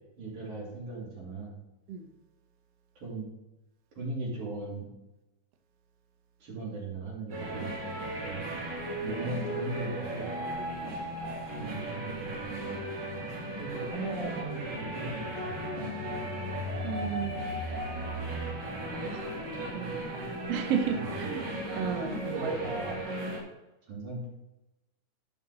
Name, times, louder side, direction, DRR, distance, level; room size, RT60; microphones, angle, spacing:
voice 1, 0.2-1.5 3.0-3.3 4.0-4.9 6.4-8.6 9.0-10.3 11.6-12.4 13.6-15.9 20.9-21.5 22.2-23.0 23.9-24.3, right 2 dB, 60° right, -5 dB, 4.1 m, -38 dB
sound 1, 7.3-23.4, right 1 dB, 40° right, 1.9 m, -36 dB
sound 2, 12.4-22.9, left 2 dB, 70° left, 1.8 m, -42 dB
voice 2, 16.8-17.6 19.1-19.3 19.7-21.4 21.7-22.6, right 7 dB, 85° right, 4 dB, 1.3 m, -33 dB
12.5 x 5.6 x 3.8 m, 0.99 s
omnidirectional pair, 4.0 m